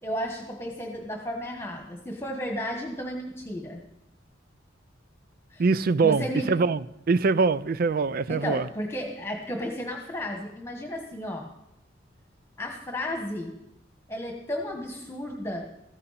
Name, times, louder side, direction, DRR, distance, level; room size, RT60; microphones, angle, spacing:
voice 1, 0.0-3.8 5.5-5.6 6.0-6.5 8.3-11.5 12.6-13.5 14.1-15.6, equal, 15° left, 1.4 m, -33 dB
voice 2, 5.6-8.7, right 4 dB, 50° right, 0.4 m, -23 dB
15.5 x 14.5 x 4.2 m
head